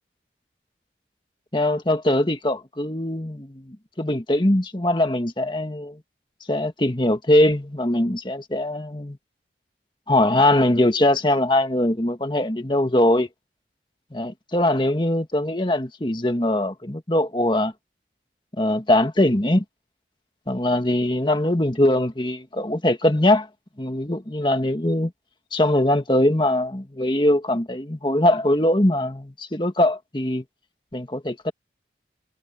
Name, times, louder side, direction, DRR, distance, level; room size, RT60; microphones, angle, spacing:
voice 1, 1.5-6.0 6.5-9.2 10.1-13.3 14.1-17.7 18.6-19.6 20.5-23.5 23.8-25.1 25.5-30.4 30.9-31.5, left 1 dB, 25° left, 1.7 m, -21 dB
head